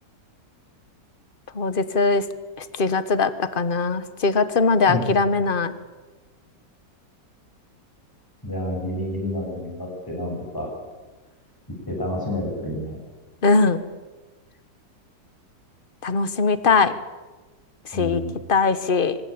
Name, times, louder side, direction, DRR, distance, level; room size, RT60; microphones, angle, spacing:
voice 1, 1.5-2.2 2.6-5.7 13.4-13.8 16.0-16.9 17.8-18.2 18.5-19.2, left 4 dB, 35° left, 13 dB, 1.3 m, -21 dB
voice 2, 4.8-5.2 8.4-10.7 11.9-13.0 17.9-18.4, left 1 dB, 10° left, -1 dB, 7.4 m, -29 dB
24.5 x 21.0 x 8.7 m, 1.2 s
omnidirectional pair, 1.9 m